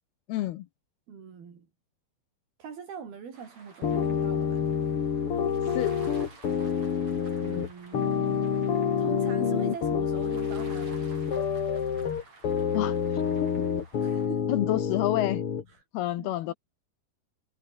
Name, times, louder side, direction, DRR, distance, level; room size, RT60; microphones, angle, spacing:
voice 1, 0.3-0.7 5.7-6.0 12.7-13.0 13.4-13.5 14.5-15.4 15.9-16.5, left 15 dB, 80° left, 3.0 m, -28 dB
voice 2, 1.1-1.7 2.6-4.6 7.4-8.5 9.0-11.0 14.0-14.5 15.7-15.8 16.2-16.5, right 6 dB, 70° right, 6.1 m, -42 dB
sound 1, 3.3-14.3, right 3 dB, 45° right, 8.2 m, -53 dB
sound 2, 3.8-15.6, left 7 dB, 40° left, 2.4 m, -28 dB
omnidirectional pair, 4.5 m